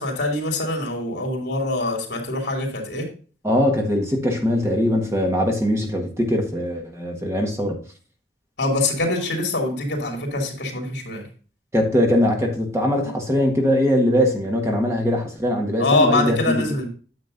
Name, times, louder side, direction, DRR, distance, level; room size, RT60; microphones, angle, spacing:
voice 1, 0.0-3.1 8.6-11.2 15.8-16.9, left 2 dB, 65° left, 1 dB, 2.8 m, -24 dB
voice 2, 3.4-7.8 11.7-16.7, equal, 15° right, 2 dB, 1.4 m, -21 dB
9.3 x 7.5 x 2.6 m, 0.39 s
head